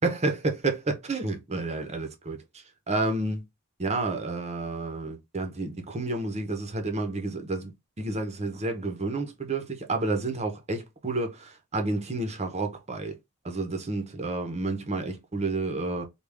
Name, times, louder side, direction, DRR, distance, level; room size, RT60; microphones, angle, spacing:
voice 1, 0.0-2.4 2.9-3.4 3.8-13.2 13.4-16.1, right 2 dB, 30° right, 0.7 m, -30 dB
3.5 x 2.3 x 3.3 m
head